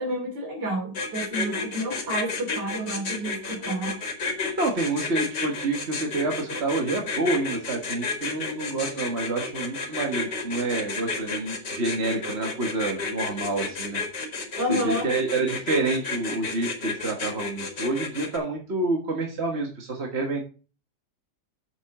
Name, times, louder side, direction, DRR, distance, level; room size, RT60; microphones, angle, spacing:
voice 1, 0.0-4.0 14.6-15.1, equal, 90° right, 1 dB, 3.7 m, -30 dB
sound 1, 0.9-18.4, left 4 dB, 90° left, 2.6 m, -31 dB
voice 2, 4.6-14.0 14.7-20.4, right 2 dB, 40° right, 2 dB, 1.6 m, -28 dB
7.3 x 6.9 x 4.8 m, 0.34 s
omnidirectional pair, 1.8 m